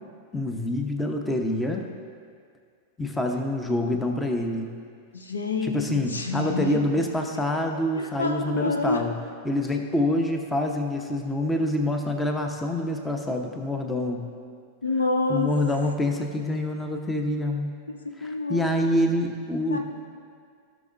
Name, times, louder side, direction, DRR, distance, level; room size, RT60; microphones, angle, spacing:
voice 1, 0.3-1.9 3.0-4.7 5.6-9.1 9.4-14.3 15.3-17.7 18.2-19.8, left 1 dB, 10° left, 3 dB, 0.9 m, -26 dB
voice 2, 5.1-6.8 8.0-9.0 14.8-15.5 18.2-18.7 19.7-19.8, left 3 dB, 80° left, 4 dB, 0.7 m, -27 dB
16.5 x 6.0 x 2.6 m, 2.1 s
figure-of-eight pair, 90°, 0 cm